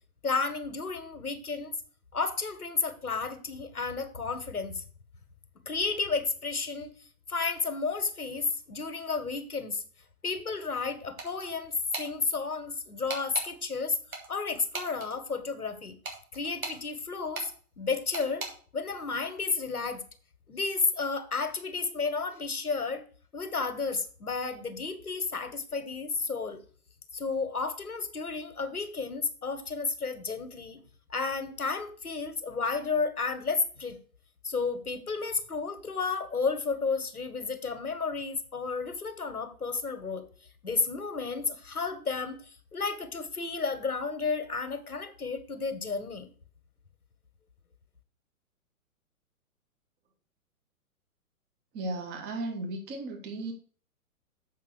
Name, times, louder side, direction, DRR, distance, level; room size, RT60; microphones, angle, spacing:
voice 1, 0.2-1.7 2.1-4.8 5.6-6.9 7.3-9.8 10.2-11.7 12.0-14.0 14.3-16.0 16.3-17.5 17.8-18.5 18.7-20.0 20.5-23.0 23.3-26.6 27.1-30.8 31.1-34.0 34.4-40.2 40.6-42.4 42.7-46.3, left 4 dB, 80° left, 9 dB, 1.6 m, -32 dB
sound 1, 11.2-11.5 11.9-12.1 13.1-13.5 14.1-15.1 16.0-16.8 17.3-17.5 18.1-18.5, right 3 dB, 70° right, 2.9 m, -37 dB
voice 2, 51.7-53.5, right 2 dB, 20° right, 4 dB, 1.7 m, -35 dB
7.6 x 5.6 x 6.5 m, 0.43 s
figure-of-eight pair, 115°, 44 cm